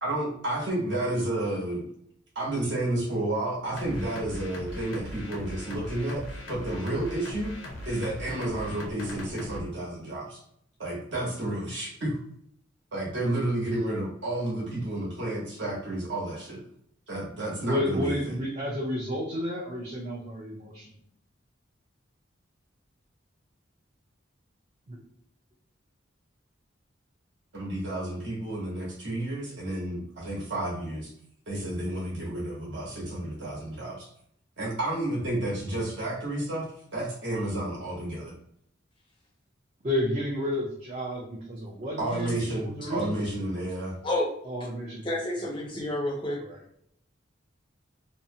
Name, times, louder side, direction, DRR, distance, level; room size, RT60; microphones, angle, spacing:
voice 1, 0.0-1.8 2.3-6.2 6.5-7.5 7.8-10.4 10.8-12.2 12.9-16.6 17.1-18.4 27.5-31.1 31.5-34.1 34.6-36.7 36.9-38.3 42.0-43.9, right 1 dB, 60° right, -4 dB, 1.0 m, -31 dB
sound 1, 3.8-9.6, left 1 dB, 75° left, 0.5 m, -39 dB
voice 2, 17.6-21.0 24.9-25.0 39.8-43.1 44.5-45.1 45.7-45.8 46.4-46.6, left 1 dB, 35° right, -5 dB, 0.5 m, -31 dB
voice 3, 45.0-46.4, left 1 dB, 25° left, -2 dB, 0.5 m, -29 dB
2.6 x 2.0 x 2.6 m, 0.70 s
head